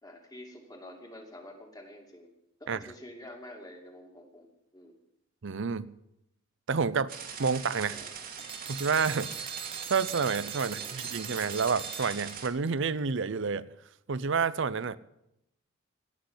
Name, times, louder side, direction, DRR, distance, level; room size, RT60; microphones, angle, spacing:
voice 1, 0.0-2.3 2.6-4.9 7.9-8.1 10.6-11.0, left 1 dB, 20° left, 2 dB, 2.5 m, -48 dB
voice 2, 5.4-5.9 6.7-8.0 8.7-9.3 9.9-13.7 14.1-15.0, right 5 dB, 65° right, 18 dB, 0.6 m, -29 dB
sound 1, 7.1-12.5, right 7 dB, 45° right, 2.0 m, -42 dB
sound 2, 8.4-12.7, right 7 dB, 30° right, 0.8 m, -41 dB
17.5 x 6.5 x 9.6 m, 0.83 s
head